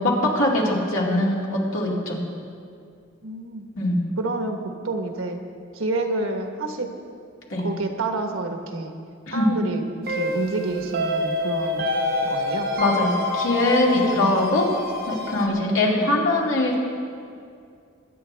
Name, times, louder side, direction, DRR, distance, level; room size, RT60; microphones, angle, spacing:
voice 1, 0.0-2.2 3.8-4.0 7.5-7.7 9.3-9.5 12.8-14.7 15.1-16.8, left 1 dB, 80° left, -3 dB, 2.6 m, -22 dB
voice 2, 3.2-3.6 4.2-5.4 5.7-6.9 7.6-8.9 9.3-9.8 10.1-11.9 12.2-12.7 13.9-14.5 15.5-16.1, right 2 dB, 90° right, 4 dB, 1.3 m, -29 dB
sound 1, 10.1-15.5, left 2 dB, 50° right, 0.9 m, -26 dB
22.5 x 9.8 x 3.4 m, 2.3 s
head